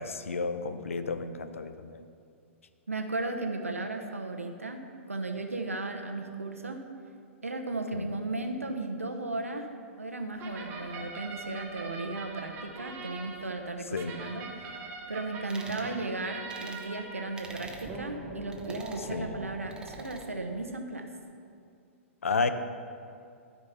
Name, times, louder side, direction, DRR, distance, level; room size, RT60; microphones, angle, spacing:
voice 1, 0.0-2.0 7.9-8.1 13.9-14.2 19.1-19.4 22.2-22.5, left 4 dB, 75° left, 10 dB, 0.6 m, -32 dB
voice 2, 2.9-4.8 5.1-6.8 7.4-9.7 10.0-14.8 15.1-21.1, right 2 dB, 90° right, 5 dB, 0.9 m, -35 dB
sound 1, 10.4-20.7, right 3 dB, 30° right, 1.8 m, -43 dB
sound 2, 15.5-15.9 16.5-16.8 17.4-17.9 18.5-19.0 19.7-20.3, right 3 dB, 10° right, 1.0 m, -47 dB
13.0 x 5.1 x 5.6 m, 2.4 s
figure-of-eight pair, 105°, 7 cm